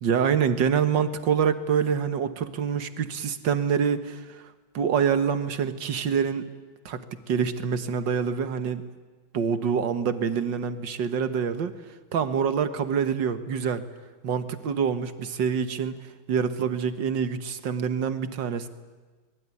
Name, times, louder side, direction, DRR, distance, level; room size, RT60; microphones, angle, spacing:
voice 1, 0.0-4.4 4.7-6.5 6.9-8.8 9.3-11.7 12.1-13.8 14.2-16.0 16.3-18.7, right 7 dB, 60° right, 10 dB, 2.0 m, -26 dB
25.0 x 21.0 x 9.8 m, 1.3 s
omnidirectional pair, 2.4 m